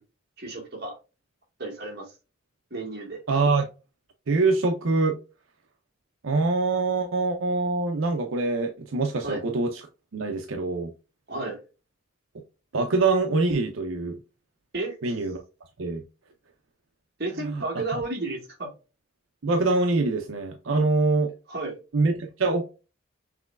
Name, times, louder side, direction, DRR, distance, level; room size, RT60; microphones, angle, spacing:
voice 1, 0.4-1.0 1.6-2.1 2.7-3.2 9.2-9.4 11.3-11.6 14.7-15.1 17.2-18.7 21.5-21.7, right 2 dB, 50° right, 1.6 m, -32 dB
voice 2, 3.3-3.7 4.3-5.2 6.2-9.8 10.1-10.9 12.7-14.2 15.0-15.4 15.8-16.0 17.4-17.8 19.4-21.3 21.9-22.7, right 3 dB, 80° right, 0.6 m, -24 dB
6.0 x 3.1 x 2.3 m
head